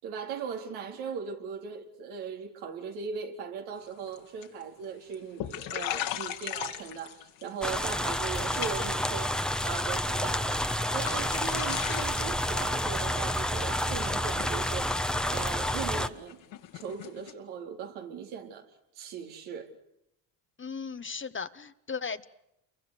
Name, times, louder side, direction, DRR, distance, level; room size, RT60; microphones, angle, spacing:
voice 1, 0.0-9.3 9.6-14.9 15.3-16.4 16.7-18.7 18.9-19.7, right 6 dB, 80° right, 4.1 m, -39 dB
sound 1, 3.9-4.2 4.4-4.8 5.1-5.2 5.4-7.5 7.8-8.1 8.4-9.0 9.3-10.0 10.4-10.6 10.9-17.3, left 12 dB, 70° left, 2.5 m, -38 dB
sound 2, 7.6-16.1, left 1 dB, ahead, 1.2 m, -29 dB
voice 2, 20.6-22.3, left 5 dB, 25° left, 1.2 m, -36 dB
29.0 x 24.0 x 6.7 m
supercardioid pair, 80°, 46 cm